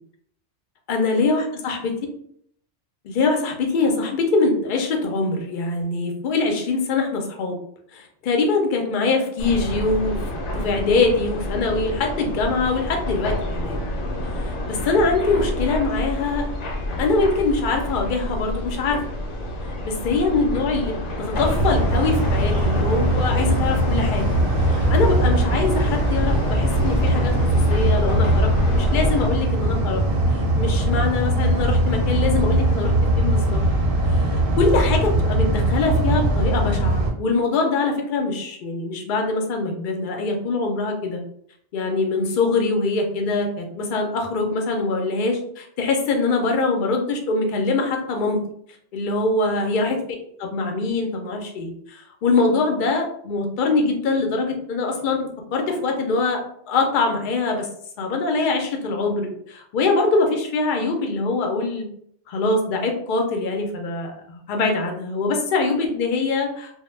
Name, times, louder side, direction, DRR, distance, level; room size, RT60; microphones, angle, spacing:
voice 1, 0.9-2.0 3.0-7.6 7.9-10.2 10.5-13.8 14.2-16.5 17.0-19.0 19.8-24.4 24.7-30.0 30.3-33.6 34.1-41.2 41.7-48.4 48.9-50.0 50.4-56.4 56.7-57.7 58.0-61.9 62.3-66.7, left 3 dB, 55° left, 2 dB, 0.6 m, -23 dB
sound 1, 9.4-29.3, equal, 85° left, 0.9 m, -28 dB
sound 2, 21.3-37.1, right 1 dB, 60° right, 0.7 m, -21 dB
2.1 x 2.1 x 3.1 m, 0.68 s
omnidirectional pair, 1.2 m